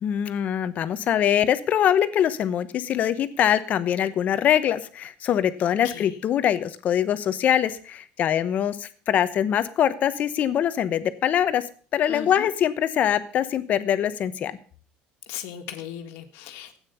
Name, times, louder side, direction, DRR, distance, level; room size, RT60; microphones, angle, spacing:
voice 1, 0.0-11.7 11.9-14.5, left 10 dB, 40° left, 13 dB, 1.0 m, -23 dB
voice 2, 5.6-6.2 12.1-12.5 15.3-16.8, left 11 dB, 75° left, 7 dB, 1.8 m, -37 dB
13.0 x 9.0 x 6.8 m, 0.42 s
cardioid pair, 150°, 4 cm